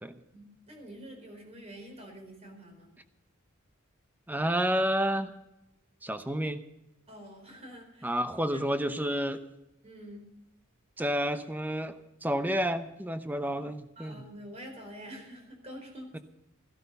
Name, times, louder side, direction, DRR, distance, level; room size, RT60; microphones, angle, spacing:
voice 1, 0.3-2.9 7.1-8.2 8.5-8.6 9.8-10.3 14.0-16.2, equal, 30° right, 3 dB, 4.4 m, -47 dB
voice 2, 4.3-5.3 6.0-6.6 8.0-9.4 11.0-14.2 16.1-16.2, equal, 10° right, 9 dB, 0.8 m, -30 dB
15.5 x 12.0 x 5.5 m, 0.92 s
head